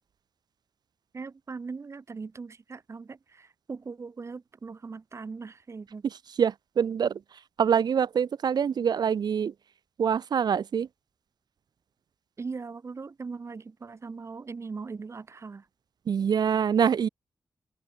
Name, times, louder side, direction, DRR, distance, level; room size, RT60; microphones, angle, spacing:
voice 1, 1.1-6.0 12.4-15.7, right 4 dB, 45° right, 3.6 m, -40 dB
voice 2, 6.4-7.2 7.6-9.5 10.0-10.9 16.1-17.1, right 7 dB, 80° right, 1.4 m, -25 dB
wide cardioid pair, 140°, 7 cm